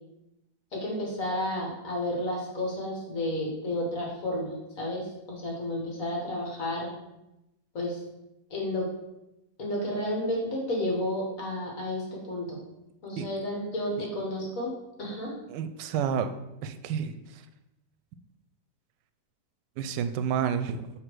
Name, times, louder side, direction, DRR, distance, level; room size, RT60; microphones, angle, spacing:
voice 1, 0.7-6.9 7.7-8.0 8.5-8.9 9.6-12.6 13.0-15.3, left 1 dB, 50° left, -2 dB, 1.9 m, -31 dB
voice 2, 15.5-16.3 16.6-17.2 19.8-20.9, right 7 dB, 90° right, 10 dB, 1.2 m, -30 dB
6.7 x 3.6 x 4.6 m, 0.92 s
omnidirectional pair, 1.8 m